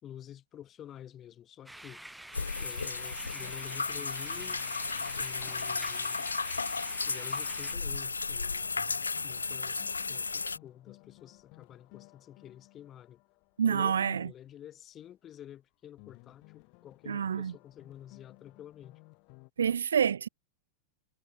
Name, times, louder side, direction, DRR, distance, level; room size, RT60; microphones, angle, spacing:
voice 1, 0.0-2.0 2.6-6.3 7.1-8.7 9.2-13.2 13.7-19.0, left 11 dB, 30° left, 3.0 m, -49 dB
sound 1, 1.7-7.7, right 1 dB, 5° right, 3.2 m, -47 dB
sound 2, 2.3-10.6, left 4 dB, 75° left, 0.4 m, -34 dB
sound 3, 3.9-7.7 8.0-8.1 8.6-14.4 16.0-19.5, left 37 dB, 45° left, 7.9 m, -58 dB
voice 2, 13.6-14.3 17.1-17.5 19.6-20.3, right 7 dB, 70° right, 0.7 m, -27 dB
figure-of-eight pair, 90°, 0 cm